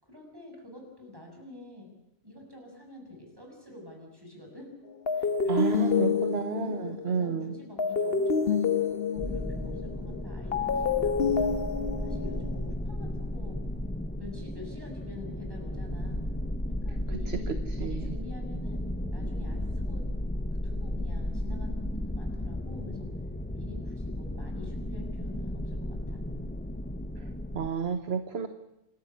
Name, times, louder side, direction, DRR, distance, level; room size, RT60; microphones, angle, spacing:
voice 1, 0.0-1.9 2.2-4.7 5.1-6.1 6.5-11.5 12.0-13.6 14.2-16.2 16.7-20.1 20.6-23.1 23.5-26.2, left 2 dB, 15° right, 1 dB, 6.7 m, -47 dB
sound 1, 5.1-12.7, left 6 dB, 50° left, 1.4 m, -28 dB
voice 2, 5.5-7.5 17.3-17.4 17.8-18.1 27.5-28.5, right 6 dB, 50° right, 9 dB, 1.4 m, -30 dB
sound 2, 9.2-27.7, left 1 dB, 10° left, 0.9 m, -34 dB
27.5 x 13.0 x 9.7 m, 0.89 s
omnidirectional pair, 1.4 m